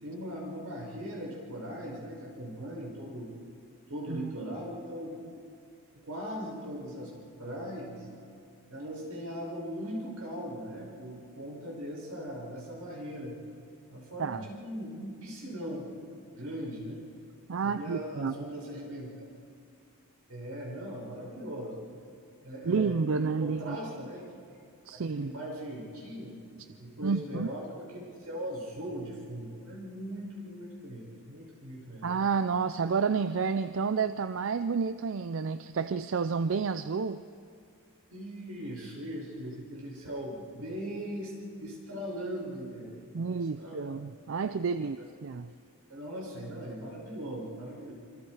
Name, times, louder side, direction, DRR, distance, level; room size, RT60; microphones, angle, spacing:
voice 1, 0.0-3.3 3.9-5.1 6.0-7.1 7.4-8.1 8.7-13.4 13.9-15.9 16.3-17.0 17.6-19.3 20.3-21.7 22.4-24.2 24.9-26.3 26.8-32.2 38.1-44.0 45.0-45.1 45.9-47.9, equal, 85° right, -2 dB, 5.8 m, -39 dB
voice 2, 17.5-18.3 22.6-23.8 24.9-25.3 27.0-27.5 32.0-37.2 43.1-45.0 45.2-45.5, right 5 dB, 60° right, 11 dB, 0.4 m, -30 dB
26.5 x 26.0 x 4.9 m, 2.4 s
head